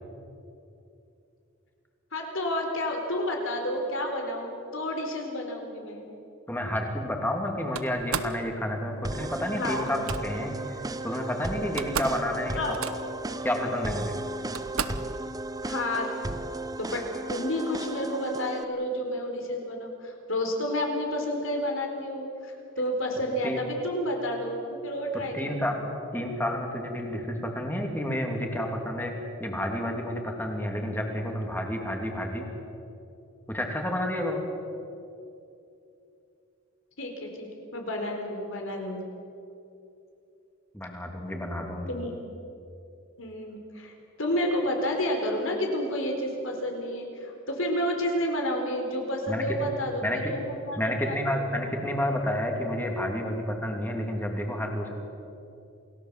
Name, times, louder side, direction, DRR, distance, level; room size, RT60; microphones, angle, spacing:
voice 1, 2.1-6.1 9.6-9.9 12.6-12.8 15.6-16.1 16.8-17.0 17.3-22.5 22.8-25.8 37.0-37.5 37.7-39.0 41.9-42.1 43.2-43.9 44.2-51.2 51.4-51.5, left 1 dB, 65° left, 2 dB, 4.3 m, -30 dB
voice 2, 6.5-10.5 11.0-12.7 13.4-14.2 23.4-23.6 25.3-25.8 26.1-29.1 29.4-32.4 33.5-34.4 40.7-41.9 49.3-49.7 50.0-50.3 50.8-54.9, left 1 dB, 10° left, 2 dB, 3.0 m, -30 dB
Slam, 7.7-8.4 9.8-10.2 11.3-11.4 11.6-12.2 12.5-13.2 14.0-14.1 14.5-15.1, right 6 dB, 85° right, 1.1 m, -33 dB
sound 1, 9.0-18.6, right 2 dB, 20° right, 0.9 m, -35 dB
28.0 x 17.5 x 7.6 m, 2.7 s
head